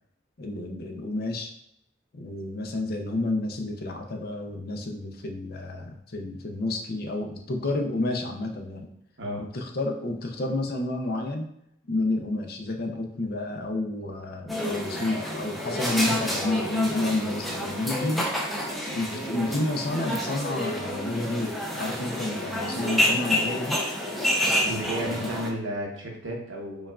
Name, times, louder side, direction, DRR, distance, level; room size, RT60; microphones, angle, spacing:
voice 1, 0.4-1.5 2.1-8.9 9.4-11.5 11.9-18.3 18.6-23.8 24.5-24.7 25.0-25.3, left 2 dB, 55° left, 3 dB, 0.6 m, -30 dB
sound 1, 14.5-25.5, left 1 dB, ahead, 0.5 m, -29 dB
voice 2, 24.6-26.9, equal, 80° right, -1 dB, 1.0 m, -33 dB
5.2 x 2.3 x 2.4 m, 0.74 s
head